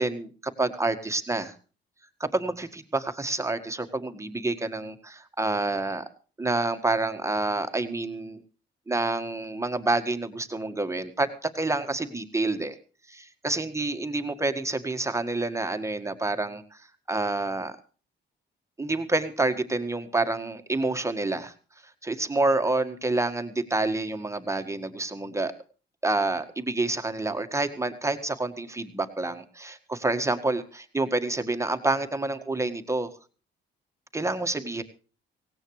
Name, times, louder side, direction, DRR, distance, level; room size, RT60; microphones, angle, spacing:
voice 1, 0.0-1.5 2.2-6.0 6.4-8.4 8.9-12.8 13.1-16.6 17.1-17.8 18.8-21.5 22.0-25.5 26.0-33.1 34.1-34.8, right 2 dB, 15° right, 7 dB, 1.7 m, -28 dB
17.5 x 17.0 x 3.2 m, 0.37 s
cardioid pair, 90°, 20 cm